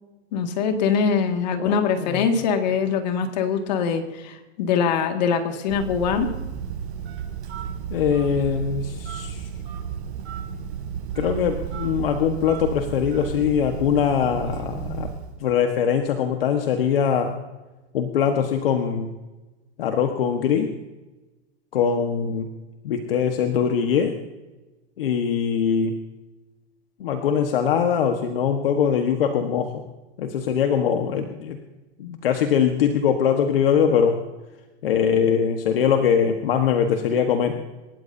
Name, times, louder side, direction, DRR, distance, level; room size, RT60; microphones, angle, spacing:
voice 1, 0.3-6.3, left 6 dB, 40° left, 5 dB, 2.1 m, -23 dB
voice 2, 1.6-2.3 7.9-9.5 11.1-15.1 15.4-17.3 17.9-19.1 19.8-20.7 21.7-22.5 22.8-24.2 25.0-25.9 27.0-29.7 30.2-31.6 32.0-34.2 34.8-37.6, left 7 dB, 55° left, 5 dB, 1.5 m, -22 dB
Telephone, 5.7-15.4, right 8 dB, 75° right, 6.6 m, -33 dB
28.0 x 13.5 x 2.8 m, 1.1 s
supercardioid pair, 175°, 33 cm